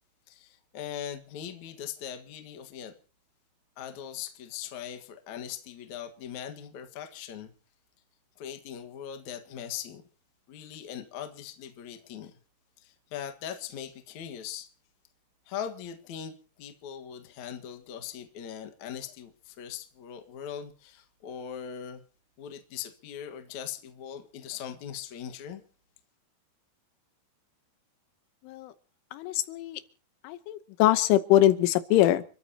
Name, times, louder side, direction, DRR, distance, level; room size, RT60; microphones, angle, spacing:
voice 1, 0.3-2.9 3.8-7.5 8.4-10.0 10.5-12.4 12.8-14.7 15.5-22.0 22.4-25.6, left 9 dB, 60° left, 2.1 m, -40 dB
voice 2, 29.1-29.8 30.2-32.2, left 13 dB, 85° left, 3.5 m, -23 dB
30.0 x 13.5 x 2.9 m
omnidirectional pair, 5.5 m